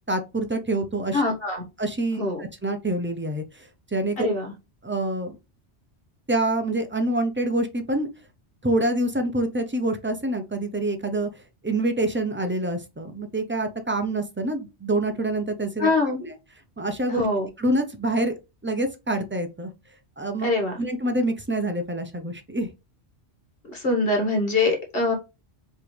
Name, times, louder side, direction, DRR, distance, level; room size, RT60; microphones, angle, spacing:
voice 1, 0.1-1.2 1.8-4.3 4.8-5.4 6.3-8.1 8.6-15.9 16.2-16.4 16.8-17.3 17.6-18.4 18.6-19.7 20.2-20.5 20.8-22.7, right 1 dB, 15° right, 0.5 m, -26 dB
voice 2, 1.1-1.6 2.1-2.4 4.2-4.5 15.8-16.2 17.1-17.5 20.4-20.7 23.7-25.1, left 2 dB, 55° left, 1.8 m, -23 dB
4.9 x 3.3 x 3.2 m
omnidirectional pair, 1.2 m